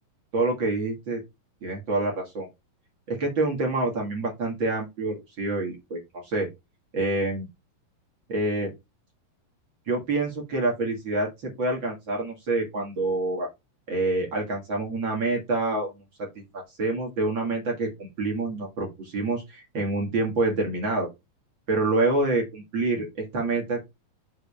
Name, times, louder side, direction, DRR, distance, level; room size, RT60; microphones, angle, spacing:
voice 1, 0.3-1.2 1.6-2.5 3.1-6.5 6.9-7.5 8.3-8.7 9.9-13.5 13.9-16.0 16.4-21.1 21.7-23.9, right 2 dB, 40° right, 0 dB, 2.2 m, -27 dB
6.9 x 3.9 x 5.5 m, 0.21 s
omnidirectional pair, 4.1 m